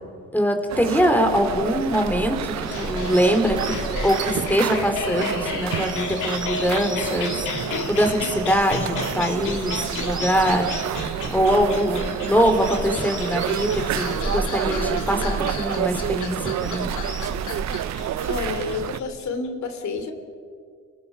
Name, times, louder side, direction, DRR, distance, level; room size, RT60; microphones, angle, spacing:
voice 1, 0.3-3.6 4.0-7.5 7.9-10.6 11.3-16.9, equal, 5° left, 5 dB, 3.5 m, -23 dB
sound 1, 0.7-19.0, right 12 dB, 65° right, 0.6 m, -30 dB
Bird vocalization bird call bird song, 1.2-19.2, right 1 dB, 15° right, 7.5 m, -35 dB
sound 2, 2.6-19.5, left 6 dB, 90° left, 2.5 m, -34 dB
voice 2, 18.3-20.1, left 4 dB, 65° left, 7 dB, 2.9 m, -29 dB
30.0 x 19.5 x 5.6 m, 2.2 s
cardioid pair, 90°, 30 cm